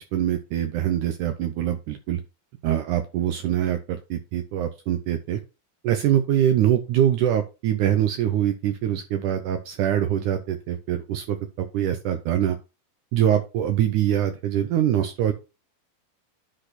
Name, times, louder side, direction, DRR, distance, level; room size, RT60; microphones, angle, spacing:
voice 1, 0.1-2.2 2.6-5.4 5.8-12.6 13.1-15.3, right 10 dB, 75° right, 8 dB, 1.9 m, -24 dB
10.0 x 4.1 x 4.1 m, 0.28 s
omnidirectional pair, 4.4 m